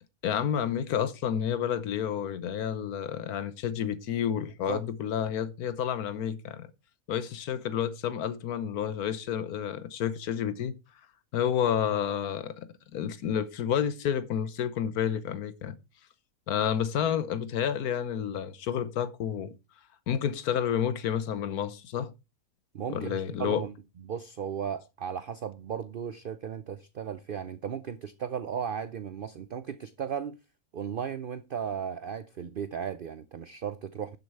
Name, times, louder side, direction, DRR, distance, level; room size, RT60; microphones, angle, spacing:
voice 1, 0.2-6.7 7.1-10.7 11.3-15.8 16.5-19.5 20.1-22.1 22.9-23.6, left 9 dB, 80° left, 1.3 m, -30 dB
voice 2, 22.7-23.7 24.0-30.4 30.7-34.2, right 7 dB, 60° right, 0.6 m, -35 dB
12.0 x 6.9 x 4.6 m
omnidirectional pair, 1.6 m